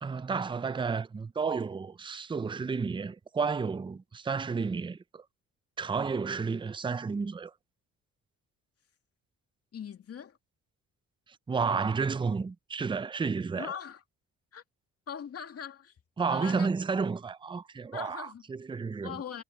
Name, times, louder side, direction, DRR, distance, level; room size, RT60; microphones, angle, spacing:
voice 1, 0.0-5.2 5.8-7.5 11.5-13.7 16.2-19.2, right 5 dB, 15° right, 0.5 m, -31 dB
voice 2, 9.7-10.4 13.5-14.0 14.5-14.6 15.1-16.0 16.3-16.7 17.9-18.4 19.0-19.4, left 8 dB, 50° left, 2.4 m, -41 dB
cardioid pair, 90°, 30 cm